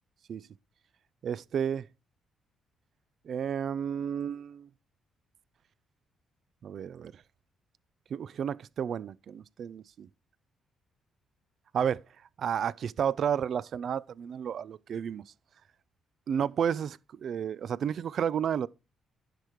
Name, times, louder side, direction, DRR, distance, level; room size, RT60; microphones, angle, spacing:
voice 1, 1.2-1.9 3.3-4.7 6.6-7.1 8.1-10.1 11.7-12.0 12.4-15.2 16.3-18.7, right 8 dB, 60° right, 0.5 m, -31 dB
10.5 x 4.7 x 5.0 m
cardioid pair, 90°, 0 cm